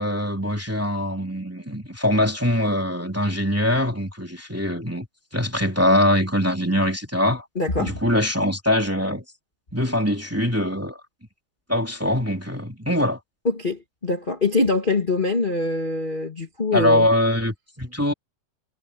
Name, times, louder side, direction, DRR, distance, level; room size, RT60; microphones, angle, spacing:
voice 1, 0.0-5.1 5.3-7.4 7.8-9.2 9.7-11.0 11.7-13.2 16.7-18.1, left 1 dB, 5° right, 2.3 m, -22 dB
voice 2, 7.5-7.9 13.4-17.1, left 3 dB, 20° left, 1.6 m, -24 dB
omnidirectional pair, 4.1 m